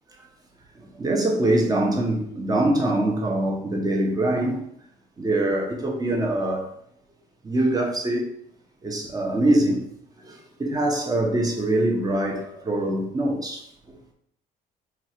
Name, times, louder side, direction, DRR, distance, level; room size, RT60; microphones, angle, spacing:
voice 1, 0.7-4.6 5.2-6.7 7.4-8.3 8.8-9.8 10.2-13.7, right 1 dB, 20° right, 0 dB, 0.8 m, -23 dB
3.0 x 2.4 x 4.3 m, 0.69 s
cardioid pair, 110°, 17 cm